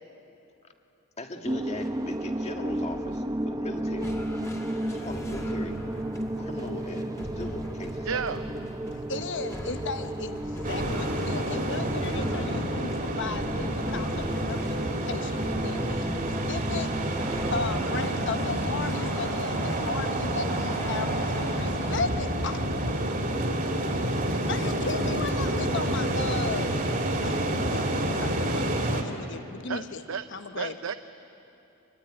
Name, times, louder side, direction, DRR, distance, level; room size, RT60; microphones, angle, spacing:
voice 1, 1.2-4.1 4.9-5.8 6.4-8.2, left 1 dB, 30° left, 4 dB, 1.7 m, -39 dB
sound 1, 1.4-17.7, right 1 dB, 20° right, 0.8 m, -33 dB
sound 2, 4.0-22.2, left 1 dB, 15° left, 1.9 m, -41 dB
voice 2, 8.1-8.4 28.4-28.6 29.7-29.8 30.1-30.2 30.6-30.9, right 6 dB, 75° right, 10 dB, 0.6 m, -32 dB
voice 3, 8.9-17.2 17.5-22.7 24.5-26.8 27.2-30.9, left 4 dB, 60° left, 9 dB, 1.1 m, -36 dB
sound 3, 10.6-29.0, right 1 dB, 40° right, 2.6 m, -29 dB
24.0 x 23.0 x 10.0 m, 2.9 s
head